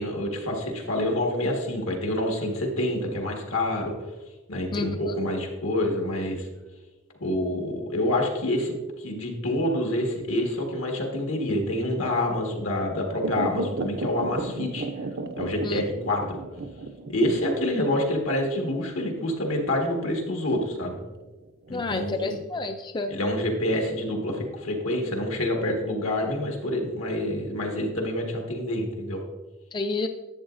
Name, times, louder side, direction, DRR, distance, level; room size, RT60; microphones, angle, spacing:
voice 1, 0.0-3.9 4.5-6.5 7.2-14.9 15.4-16.4 17.1-21.0 21.7-22.4 23.1-29.2, left 1 dB, 85° left, 1 dB, 1.6 m, -27 dB
sound 1, 13.2-22.1 22.4-22.5, right 3 dB, 50° right, 0.5 m, -35 dB
voice 2, 21.7-23.1 29.7-30.1, left 3 dB, 20° left, 6 dB, 0.3 m, -29 dB
11.0 x 8.1 x 2.5 m, 1.2 s
head